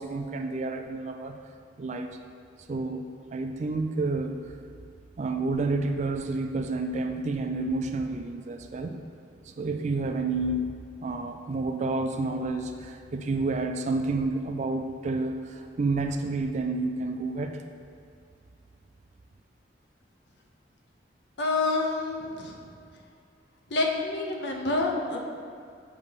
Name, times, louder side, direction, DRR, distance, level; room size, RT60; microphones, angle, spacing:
voice 1, 0.0-1.4 1.8-2.2 2.7-4.4 5.2-9.0 9.5-10.7 11.0-17.6, right 3 dB, 40° right, 5 dB, 0.3 m, -30 dB
voice 2, 21.4-22.6 23.7-25.2, left 3 dB, 65° left, 1 dB, 0.8 m, -28 dB
7.9 x 2.9 x 5.3 m, 2.3 s
head